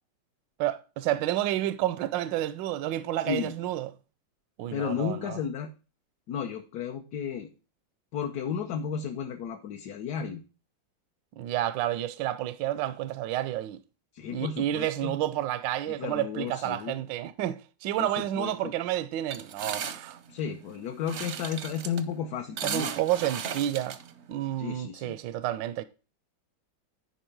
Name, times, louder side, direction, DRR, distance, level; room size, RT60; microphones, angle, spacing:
voice 1, 0.6-3.9 4.6-5.4 11.4-13.8 14.3-20.2 22.6-24.0 24.3-25.8, right 13 dB, 80° right, 1.2 m, -30 dB
voice 2, 4.7-5.7 6.3-7.5 8.1-10.4 14.1-15.2 15.9-17.0 18.0-18.7 20.3-22.9 24.6-25.1, left 7 dB, 65° left, 1.2 m, -33 dB
sound 1, 19.3-24.6, right 7 dB, 55° right, 0.8 m, -37 dB
10.0 x 4.7 x 4.5 m
omnidirectional pair, 2.0 m